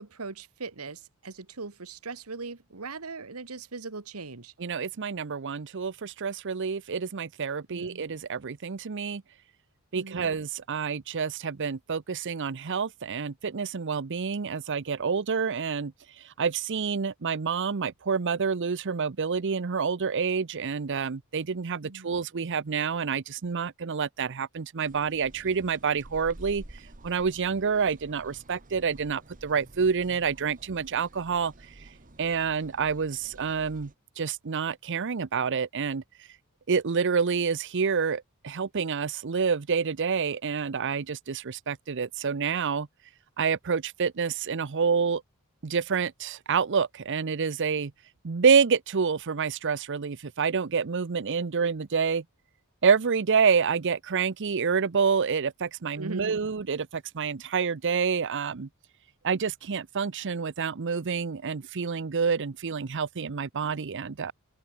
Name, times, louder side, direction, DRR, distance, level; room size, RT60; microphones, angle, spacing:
voice 1, 0.0-4.5 7.7-8.0 9.9-10.3 21.8-22.2 56.0-56.4, right 3 dB, 85° right, 1.6 m, -40 dB
voice 2, 4.6-9.2 9.9-15.9 16.4-26.6 27.0-31.5 32.2-33.9 34.2-36.0 36.7-42.9 43.4-45.2 45.6-47.9 48.2-52.2 52.8-58.7 59.2-64.3, right 6 dB, 55° right, 0.7 m, -28 dB
sound 1, 24.8-33.9, right 1 dB, 40° right, 1.6 m, -50 dB
open air
head